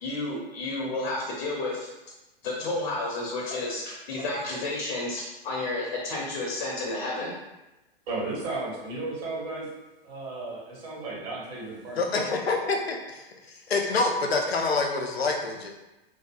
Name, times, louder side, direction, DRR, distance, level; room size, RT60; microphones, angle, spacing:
voice 1, 0.0-1.9 2.4-7.3, left 2 dB, 50° left, -3 dB, 0.7 m, -31 dB
voice 2, 8.1-9.7 10.0-12.0, right 2 dB, 40° right, -5 dB, 1.4 m, -34 dB
voice 3, 12.0-15.7, left 3 dB, 85° left, 2 dB, 0.6 m, -27 dB
2.6 x 2.6 x 2.4 m, 1.0 s
figure-of-eight pair, 105°, 30 cm